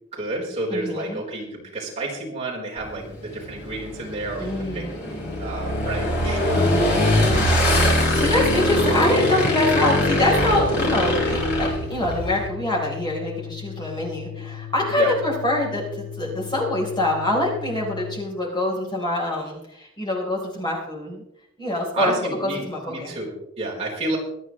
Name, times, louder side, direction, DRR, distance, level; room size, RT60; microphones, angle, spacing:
voice 1, 0.1-4.9 5.4-8.2 15.0-15.1 21.9-24.2, right 2 dB, 30° right, -5 dB, 4.2 m, -31 dB
voice 2, 0.7-1.2 4.4-5.3 6.5-7.7 8.1-21.2 21.6-23.2, left 1 dB, 20° left, -3 dB, 3.9 m, -25 dB
Motorcycle / Engine, 2.8-12.5, left 1 dB, 50° left, 4.3 m, -22 dB
Organ, 8.0-18.3, left 9 dB, 80° left, 2.0 m, -37 dB
25.0 x 9.8 x 3.2 m, 0.79 s
head